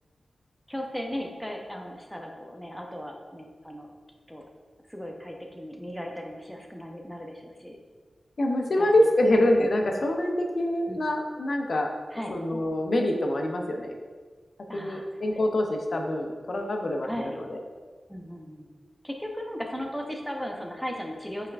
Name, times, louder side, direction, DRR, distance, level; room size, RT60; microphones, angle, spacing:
voice 1, 0.7-3.9 4.3-4.5 4.9-7.8 8.8-9.1 10.9-11.0 12.1-12.4 14.7-15.1 17.0-17.4 18.1-18.8 19.0-21.5, equal, ahead, 1 dB, 0.6 m, -36 dB
voice 2, 8.4-11.9 12.3-13.9 14.7-17.6, left 1 dB, 65° left, 2 dB, 0.5 m, -25 dB
5.5 x 3.4 x 2.4 m, 1.5 s
wide cardioid pair, 80°, 0 cm